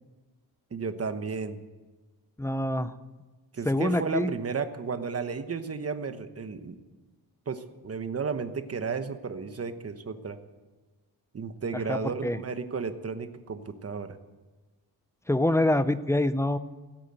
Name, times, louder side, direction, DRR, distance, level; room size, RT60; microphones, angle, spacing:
voice 1, 0.7-1.6 3.5-6.8 7.5-10.4 11.3-14.2, right 5 dB, 40° right, 10 dB, 1.1 m, -33 dB
voice 2, 2.4-3.0 3.6-4.3 11.9-12.4 15.3-16.6, left 1 dB, 5° left, 13 dB, 0.6 m, -25 dB
16.0 x 9.1 x 8.9 m, 1.2 s
wide cardioid pair, 120°, 38 cm